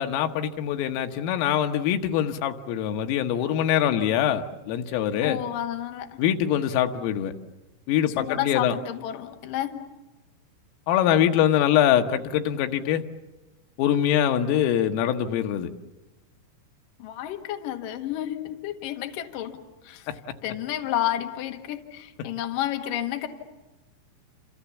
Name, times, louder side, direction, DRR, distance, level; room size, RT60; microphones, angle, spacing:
voice 1, 0.0-5.4 6.2-7.3 7.9-8.8 10.9-13.0 13.8-15.7 20.1-20.2, left 10 dB, 90° left, 6 dB, 3.8 m, -23 dB
voice 2, 5.2-6.1 8.2-9.8 17.0-19.6 19.8-20.1 20.4-23.3, left 12 dB, 60° left, 4 dB, 2.5 m, -31 dB
28.0 x 27.5 x 7.2 m, 1.1 s
omnidirectional pair, 5.8 m